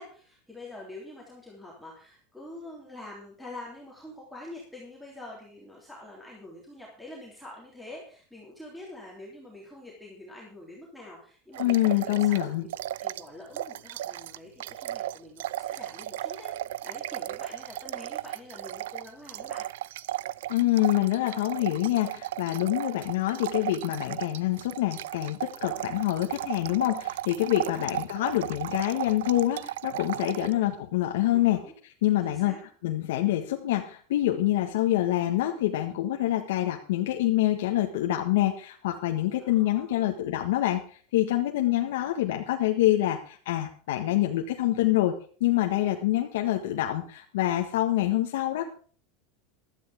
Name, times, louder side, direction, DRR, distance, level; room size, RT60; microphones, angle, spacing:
voice 1, 0.0-19.6 27.8-27.9 30.4-30.6 31.3-31.7 32.2-32.6 39.4-40.1, left 2 dB, ahead, -5 dB, 3.4 m, -46 dB
sound 1, 11.5-13.3 13.5-30.5, right 14 dB, 90° right, 0.5 m, -35 dB
voice 2, 11.6-12.7 20.5-31.6 32.0-32.5 32.8-45.1 45.4-48.7, left 14 dB, 85° left, 3 dB, 1.6 m, -26 dB
15.5 x 12.5 x 3.7 m, 0.43 s
supercardioid pair, 165°, 0 cm